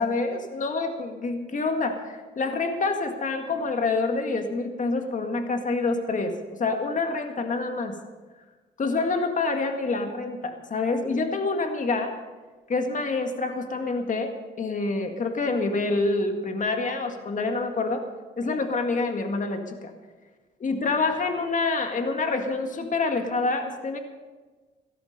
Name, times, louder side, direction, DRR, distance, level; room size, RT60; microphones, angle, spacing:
voice 1, 0.0-8.0 8.8-12.1 12.7-14.3 14.6-18.0 18.4-19.9 20.6-24.0, left 3 dB, 40° left, 5 dB, 1.9 m, -27 dB
16.5 x 13.0 x 5.4 m, 1.3 s
cardioid pair, 90°, 20 cm